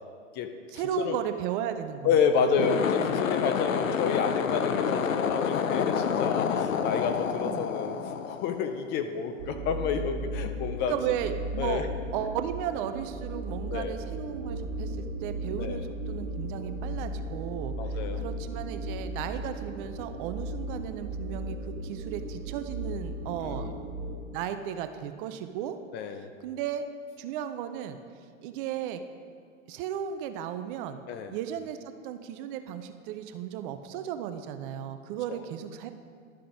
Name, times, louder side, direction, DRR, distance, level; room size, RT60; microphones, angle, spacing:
voice 1, 0.7-2.1 2.4-3.2 7.4-7.7 10.9-11.8 12.1-23.7 24.3-25.8 26.1-26.8 27.2-28.0 28.4-29.0 29.7-31.0 31.3-31.8 32.0-35.9, right 10 dB, 40° right, 9 dB, 0.6 m, -35 dB
voice 2, 2.0-11.0 11.6-11.9 13.7-14.0 15.6-15.8 17.8-18.2 23.4-23.9 25.9-26.3 31.1-31.3 35.3-35.5, left 6 dB, 30° left, 8 dB, 0.5 m, -29 dB
sound 1, 2.5-9.0, left 7 dB, 90° left, 0.7 m, -28 dB
sound 2, 9.4-24.2, right 1 dB, 70° right, 2.4 m, -36 dB
11.5 x 5.7 x 5.0 m, 2.2 s
hypercardioid pair, 115°, 38 cm